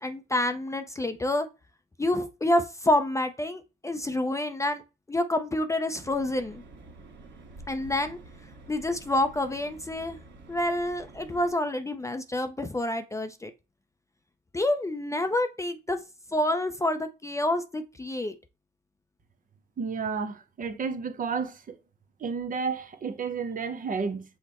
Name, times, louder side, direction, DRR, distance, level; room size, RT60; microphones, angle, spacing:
voice 1, 0.0-1.5 2.0-4.8 5.1-6.6 7.7-8.2 8.7-10.2 10.5-13.5 14.5-16.0 16.3-18.3, left 1 dB, 15° left, 0.5 m, -28 dB
sound 1, 5.9-11.5, right 2 dB, 60° right, 1.7 m, -49 dB
voice 2, 19.8-21.8 22.2-24.2, right 5 dB, 45° right, 0.8 m, -31 dB
6.0 x 2.1 x 4.1 m
cardioid pair, 90°, 20 cm